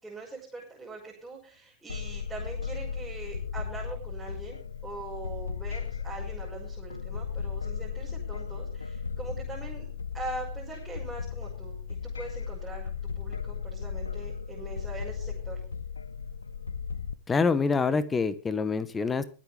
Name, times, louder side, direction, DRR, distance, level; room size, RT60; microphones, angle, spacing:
voice 1, 0.0-9.9 10.1-15.6, right 3 dB, 5° right, -5 dB, 5.8 m, -42 dB
sound 1, 1.9-17.1, left 6 dB, 75° left, 0.7 m, -36 dB
voice 2, 17.3-19.2, left 4 dB, 15° left, 15 dB, 1.1 m, -26 dB
23.5 x 8.2 x 3.6 m, 0.37 s
figure-of-eight pair, 90°, 0 cm